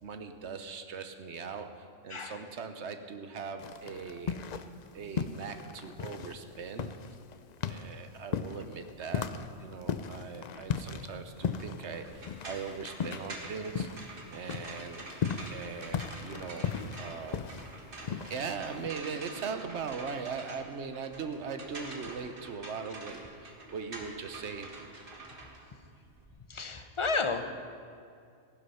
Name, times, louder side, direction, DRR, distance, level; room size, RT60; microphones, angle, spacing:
voice 1, 0.0-4.4 4.9-6.9 7.6-15.0 15.5-17.4 18.3-24.7, right 5 dB, 65° right, 8 dB, 1.2 m, -40 dB
sound 1, 3.6-4.9 5.1-14.2 14.4-18.9, left 7 dB, 55° left, 0.5 m, -36 dB
sound 2, 12.1-26.3, right 2 dB, 45° right, 1.8 m, -46 dB
voice 2, 26.5-27.4, left 4 dB, 30° left, 7 dB, 0.8 m, -31 dB
15.0 x 11.0 x 5.6 m, 2.4 s
omnidirectional pair, 1.3 m